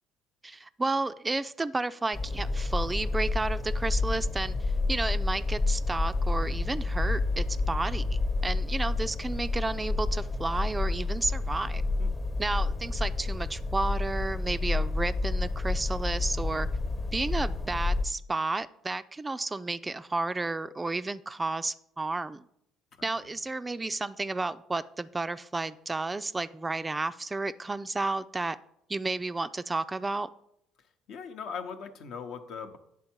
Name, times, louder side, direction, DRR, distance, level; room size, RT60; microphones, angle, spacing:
voice 1, 0.4-4.6 4.9-11.8 12.4-16.7 17.1-22.4 23.0-28.6 28.9-30.3, right 3 dB, 20° right, 14 dB, 0.3 m, -32 dB
sound 1, 2.1-18.0, left 3 dB, 35° left, 0.9 m, -29 dB
voice 2, 22.9-23.3 31.1-32.8, left 6 dB, 65° left, 7 dB, 0.7 m, -40 dB
9.6 x 3.5 x 4.5 m, 0.75 s
hypercardioid pair, 65°, 0 cm